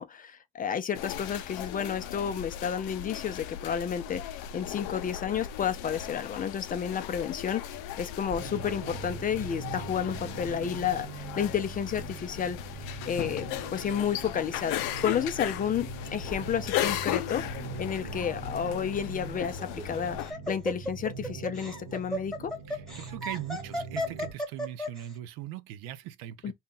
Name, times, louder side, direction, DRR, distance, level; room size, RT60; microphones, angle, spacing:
voice 1, 0.0-12.6 13.1-22.5 26.4-26.5, left 8 dB, 25° left, 0.3 m, -31 dB
sound 1, 0.9-20.3, left 12 dB, 80° left, 0.5 m, -37 dB
sound 2, 8.3-24.3, right 5 dB, 40° right, 1.0 m, -42 dB
Laughter, 19.6-25.0, equal, ahead, 1.2 m, -34 dB
voice 2, 22.7-26.5, right 12 dB, 85° right, 0.6 m, -40 dB
2.8 x 2.1 x 3.7 m
cardioid pair, 115°, 32 cm